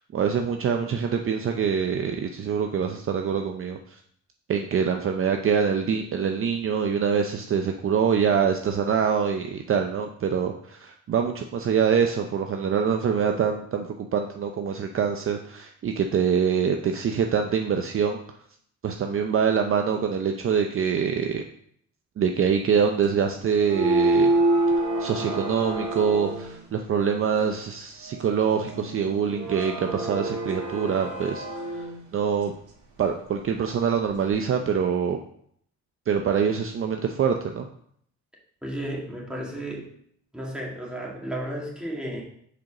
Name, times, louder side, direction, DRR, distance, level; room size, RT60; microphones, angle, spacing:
voice 1, 0.1-4.0 4.5-18.2 18.8-21.4 22.2-24.3 25.0-32.5 33.0-35.2 36.1-37.7, right 7 dB, 45° right, 5 dB, 0.6 m, -25 dB
sound 1, 23.5-26.6 28.1-32.0, right 2 dB, 90° right, 1.5 m, -27 dB
voice 2, 38.6-39.9 40.3-42.2, right 1 dB, 5° right, -3 dB, 2.2 m, -33 dB
5.0 x 4.6 x 5.8 m, 0.65 s
cardioid pair, 90°, 30 cm